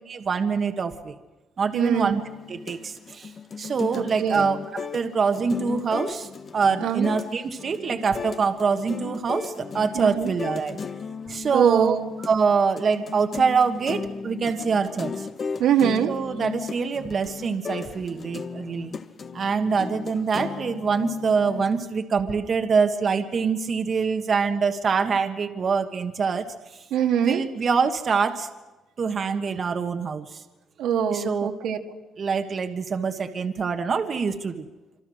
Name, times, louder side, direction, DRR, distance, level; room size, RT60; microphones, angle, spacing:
voice 1, 0.1-1.2 1.6-2.2 2.5-3.3 3.6-6.3 6.5-10.8 11.3-15.3 16.1-19.0 19.3-26.5 27.2-28.5 29.0-30.4 31.1-31.5 32.2-34.6, right 5 dB, 40° right, 6 dB, 1.4 m, -25 dB
voice 2, 1.7-2.2 3.9-4.5 6.8-7.1 9.9-10.3 11.5-12.1 15.6-16.1 26.9-27.4 30.8-31.8, right 8 dB, 80° right, 4 dB, 2.0 m, -23 dB
sound 1, 1.9-21.8, left 5 dB, 40° left, 1.2 m, -36 dB
26.5 x 26.0 x 6.4 m, 1.1 s
cardioid pair, 105°, 0 cm